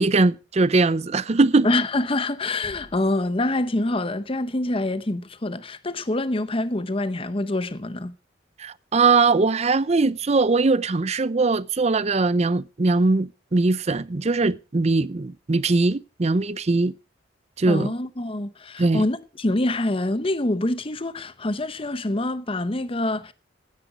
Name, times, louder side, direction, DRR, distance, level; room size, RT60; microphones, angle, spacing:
voice 1, 0.0-1.7 8.6-16.9 17.6-17.9 18.8-19.0, right 3 dB, 35° right, 0.6 m, -21 dB
voice 2, 1.6-8.1 17.7-23.3, left 2 dB, 30° left, 0.9 m, -26 dB
sound 1, 2.6-4.2, equal, 15° left, 4.1 m, -51 dB
16.0 x 10.0 x 5.0 m
head